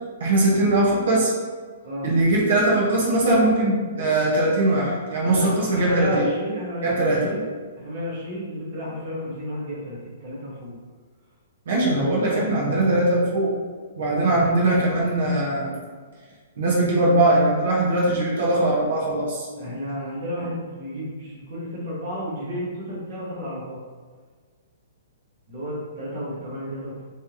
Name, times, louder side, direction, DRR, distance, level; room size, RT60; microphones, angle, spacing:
voice 1, 0.2-1.3 2.0-6.3 6.8-7.3 11.7-13.5 13.9-15.7 16.6-19.5, right 2 dB, 65° right, -4 dB, 1.2 m, -20 dB
voice 2, 5.7-7.4 7.8-10.7 12.3-12.9 14.3-14.4 19.6-23.8 25.5-27.0, equal, 30° right, -6 dB, 1.3 m, -32 dB
3.5 x 3.3 x 2.9 m, 1.5 s
hypercardioid pair, 175°, 0 cm